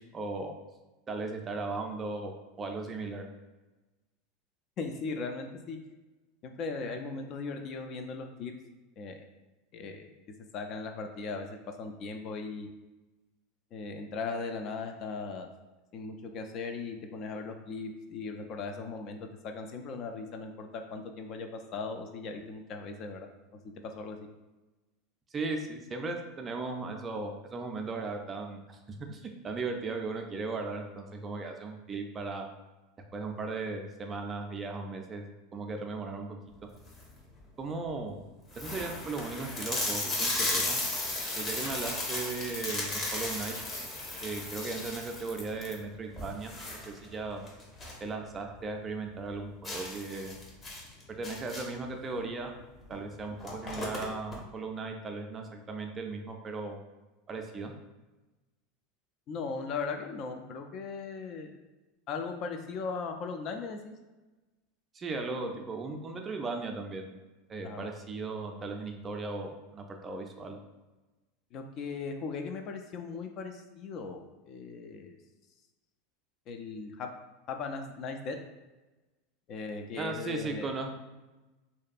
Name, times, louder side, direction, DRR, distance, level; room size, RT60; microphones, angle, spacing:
voice 1, 0.1-0.5 1.1-2.3 2.6-3.2 25.3-28.8 29.1-32.5 33.1-35.2 35.5-36.7 37.6-38.2 38.6-40.8 41.3-43.5 44.2-47.5 48.0-50.4 51.1-52.6 52.9-56.8 57.3-57.7 64.9-67.1 67.5-70.6 80.0-80.9, right 3 dB, 30° right, 4 dB, 0.4 m, -37 dB
voice 2, 4.8-5.8 6.4-8.5 9.0-9.3 9.7-10.1 10.5-12.7 13.7-15.5 15.9-23.3 23.6-24.3 59.3-61.5 62.1-63.9 67.6-67.9 71.5-75.2 76.5-77.1 77.5-78.4 79.5-80.7, left 4 dB, 45° left, 5 dB, 0.3 m, -38 dB
sound 1, 36.7-37.2 37.8-37.9 38.1-38.2 38.5-48.1 48.4-48.5 48.9-49.0 49.6-51.9 52.8-53.0 53.2-54.4, left 2 dB, 25° left, 0.7 m, -35 dB
sound 2, 41.3-45.0, left 2 dB, 75° left, 0.9 m, -49 dB
2.6 x 2.2 x 2.4 m, 1.1 s
hypercardioid pair, 85°, 0 cm